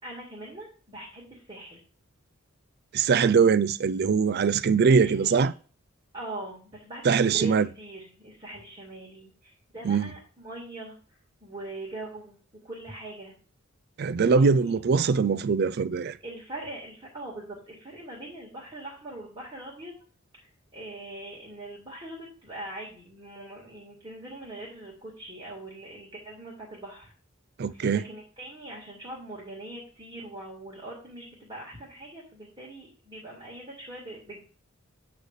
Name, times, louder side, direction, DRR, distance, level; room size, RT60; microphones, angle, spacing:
voice 1, 0.0-1.8 5.0-5.5 6.1-11.0 11.4-12.4 12.6-13.3 14.3-14.7 16.2-19.9 20.4-27.1 27.7-34.4, right 1 dB, 25° right, 2.3 m, -42 dB
voice 2, 2.9-5.5 7.0-7.7 9.8-10.1 14.0-16.2 27.6-28.0, right 5 dB, 50° right, 0.4 m, -22 dB
8.8 x 3.3 x 6.6 m
head